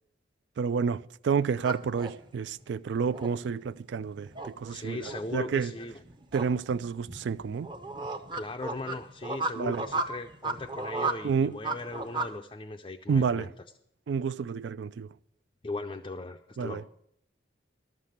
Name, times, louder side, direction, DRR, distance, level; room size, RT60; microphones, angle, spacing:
voice 1, 0.6-5.7 6.3-7.7 9.6-9.8 11.2-11.5 13.1-13.5 14.1-15.1 16.6-16.8, right 6 dB, 75° right, 0.3 m, -29 dB
sound 1, 1.6-12.3, right 3 dB, 25° right, 0.6 m, -35 dB
voice 2, 4.7-6.0 8.3-13.5 15.6-16.9, left 2 dB, 25° left, 0.4 m, -38 dB
12.0 x 7.5 x 6.6 m
head